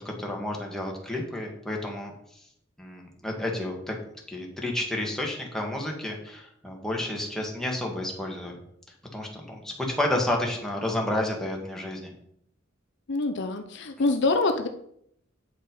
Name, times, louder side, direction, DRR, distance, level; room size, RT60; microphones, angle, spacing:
voice 1, 0.2-2.1 2.8-3.9 4.3-8.5 9.1-12.1, left 1 dB, 5° left, -1 dB, 1.7 m, -30 dB
voice 2, 13.1-14.7, left 3 dB, 60° left, 7 dB, 0.7 m, -25 dB
9.0 x 5.4 x 5.3 m, 0.71 s
head